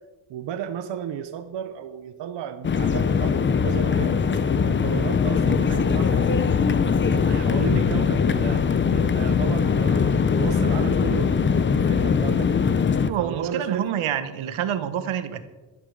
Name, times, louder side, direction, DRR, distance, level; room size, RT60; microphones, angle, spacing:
voice 1, 0.3-4.2 4.6-6.6 7.1-12.5 13.2-13.9, right 9 dB, 60° right, 9 dB, 0.8 m, -33 dB
sound 1, 2.6-13.1, left 6 dB, 25° left, 0.6 m, -21 dB
voice 2, 13.1-15.4, right 9 dB, 90° right, 11 dB, 1.3 m, -27 dB
12.0 x 9.8 x 6.5 m, 1.2 s
cardioid pair, 165°, 47 cm